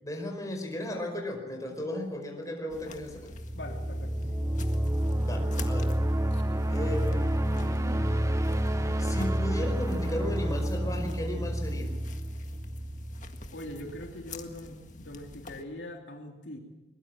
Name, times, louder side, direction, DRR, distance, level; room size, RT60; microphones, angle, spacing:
voice 1, 0.0-3.3 5.2-5.9 6.7-8.1 9.0-11.9, left 1 dB, 20° left, 3 dB, 4.8 m, -35 dB
sound 1, 2.7-15.6, left 2 dB, 45° left, 1.8 m, -47 dB
sound 2, 3.2-14.0, right 1 dB, 15° right, 0.9 m, -29 dB
voice 2, 3.5-4.4 6.3-6.4 13.5-16.6, left 1 dB, 75° left, 2 dB, 3.2 m, -42 dB
22.0 x 21.5 x 7.5 m, 1.0 s
head